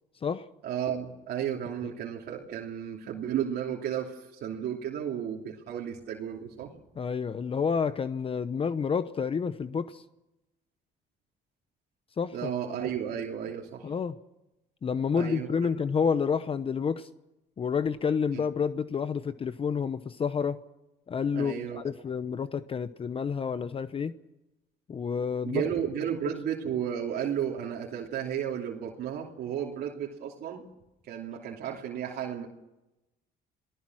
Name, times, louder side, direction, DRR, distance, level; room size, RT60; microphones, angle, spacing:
voice 1, 0.6-6.7 12.3-13.9 15.1-15.5 18.3-18.4 21.3-21.8 25.5-30.6 31.0-32.5, right 9 dB, 70° right, -2 dB, 3.0 m, -33 dB
voice 2, 7.0-10.0 12.2-12.5 13.8-14.2 14.8-17.1 17.6-20.6 21.1-24.2 24.9-25.6, left 6 dB, 35° left, 12 dB, 0.9 m, -29 dB
28.5 x 19.0 x 6.3 m, 0.94 s
cardioid pair, 110°, 17 cm